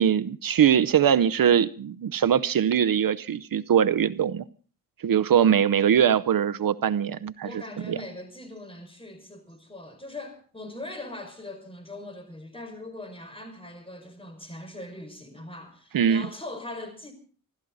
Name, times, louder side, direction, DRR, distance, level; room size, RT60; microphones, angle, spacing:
voice 1, 0.0-4.4 5.0-8.0 15.9-16.3, right 8 dB, 70° right, 0.8 m, -22 dB
voice 2, 7.4-17.1, left 2 dB, 15° left, 5.3 m, -41 dB
27.0 x 13.5 x 3.9 m
wide cardioid pair, 115°, 36 cm